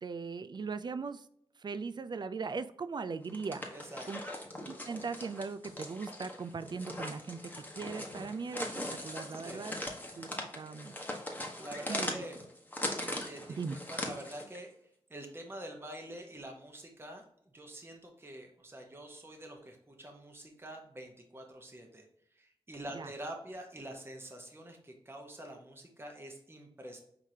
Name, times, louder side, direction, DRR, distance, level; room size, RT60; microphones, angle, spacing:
voice 1, 0.0-1.3 1.6-3.7 4.1-4.2 4.6-8.7 9.0-9.8 10.2-11.0 11.9-12.2 13.5-13.8 22.9-23.1, right 4 dB, 50° right, 11 dB, 0.4 m, -39 dB
sound 1, 3.2-14.6, left 1 dB, 15° left, 1.0 m, -40 dB
voice 2, 3.7-4.1 9.4-9.7 11.3-12.4 13.2-14.7 15.1-17.2 17.5-22.0 22.4-27.0, right 1 dB, 25° right, 2 dB, 1.0 m, -46 dB
4.7 x 3.6 x 2.8 m, 0.69 s
cardioid pair, 65°, 10 cm